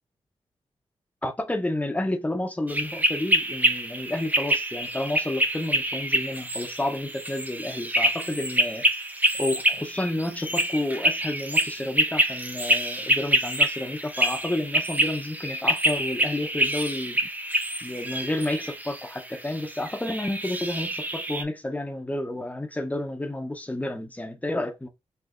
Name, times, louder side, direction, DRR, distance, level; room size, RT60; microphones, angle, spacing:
voice 1, 1.2-8.9 9.4-17.2 17.8-24.9, left 1 dB, 15° left, 0.8 m, -30 dB
sound 1, 2.7-21.4, right 1 dB, 15° right, 0.6 m, -26 dB
4.7 x 2.7 x 2.5 m
cardioid pair, 55°, 12 cm